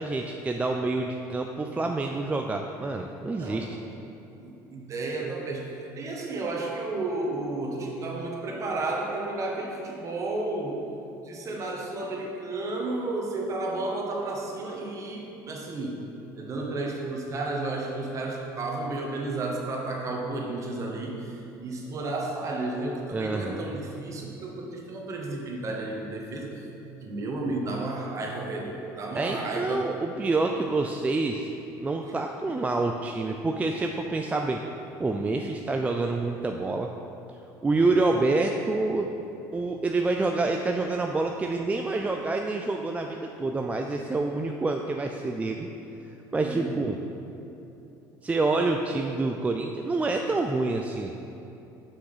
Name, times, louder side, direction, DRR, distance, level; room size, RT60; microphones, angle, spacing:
voice 1, 0.0-3.8 23.1-23.6 29.1-31.5 31.8-34.6 35.0-36.9 37.6-39.1 39.5-45.7 46.3-47.0 48.2-51.1, right 3 dB, 15° right, 3 dB, 0.4 m, -27 dB
voice 2, 3.3-3.7 4.4-10.8 11.2-16.0 16.3-26.6 27.0-29.8 46.4-46.7, right 2 dB, 40° right, -1 dB, 1.3 m, -32 dB
6.1 x 5.8 x 5.0 m, 3.0 s
supercardioid pair, 105°, 8 cm